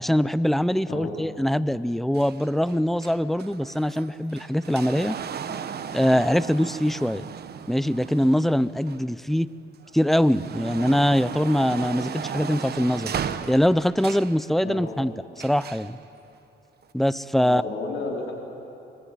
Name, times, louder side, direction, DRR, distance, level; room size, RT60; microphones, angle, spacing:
voice 1, 0.0-5.2 5.9-7.2 7.7-9.5 9.9-13.1 13.5-15.1 15.4-16.0 16.9-17.6, equal, ahead, 16 dB, 0.6 m, -23 dB
sound 1, 2.1-9.3 9.8-14.4 15.4-15.9 16.8-16.9, right 7 dB, 55° right, 1.2 m, -36 dB
voice 2, 14.6-15.0 17.4-18.3, left 3 dB, 75° left, 0 dB, 4.3 m, -32 dB
25.5 x 21.5 x 9.4 m, 2.9 s
cardioid pair, 90°, 20 cm